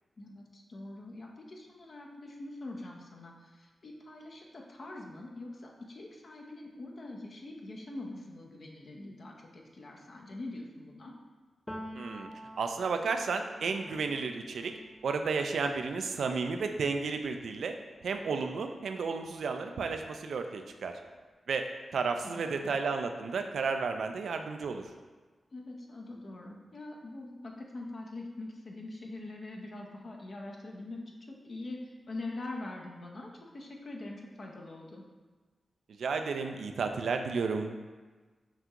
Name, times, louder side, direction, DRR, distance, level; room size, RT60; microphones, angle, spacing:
voice 1, 0.2-11.1 22.2-22.7 25.5-35.0, left 2 dB, 60° left, 0 dB, 0.7 m, -44 dB
Piano, 11.7-19.3 19.6-21.2, equal, 20° left, 0.6 m, -50 dB
voice 2, 11.9-12.3 12.6-14.7 15.0-17.8 18.0-21.0 21.5-24.9 35.9-37.8, right 4 dB, 80° right, 6 dB, 0.3 m, -32 dB
5.8 x 2.4 x 2.9 m, 1.3 s
cardioid pair, 45°, 0 cm